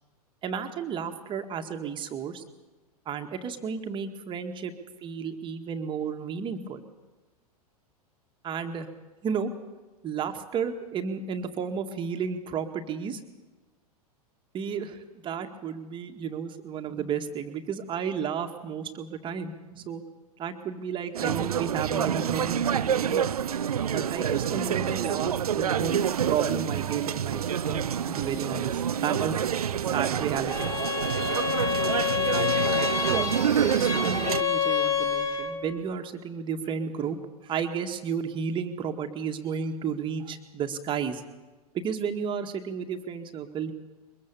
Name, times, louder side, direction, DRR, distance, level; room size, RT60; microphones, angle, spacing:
voice 1, 0.4-2.4 3.1-4.7 5.0-6.8 8.4-8.9 9.2-9.5 10.0-13.2 14.5-20.0 20.4-23.2 23.9-29.4 29.9-30.7 32.2-32.6 33.1-33.3 33.6-37.2 37.4-41.2 41.7-43.7, right 7 dB, 25° right, 6 dB, 2.0 m, -32 dB
sound 1, 21.1-34.4, right 8 dB, 70° right, 0.7 m, -27 dB
Bowed string instrument, 30.5-35.6, left 7 dB, 15° left, 2.3 m, -28 dB
23.0 x 21.5 x 7.2 m, 1.2 s
figure-of-eight pair, 95°, 20 cm